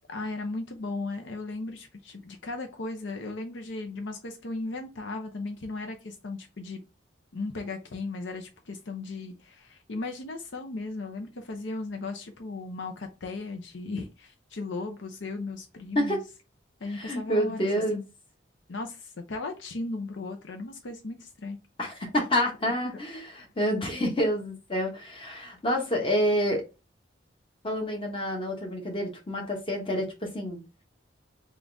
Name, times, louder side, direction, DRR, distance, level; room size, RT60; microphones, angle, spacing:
voice 1, 0.1-6.8 7.3-16.2 16.8-18.0 18.7-21.6, left 3 dB, 75° left, 0.6 m, -36 dB
voice 2, 16.9-18.0 21.8-23.2 23.6-26.6 27.6-30.6, equal, 30° left, 1.1 m, -28 dB
3.8 x 2.5 x 3.4 m
head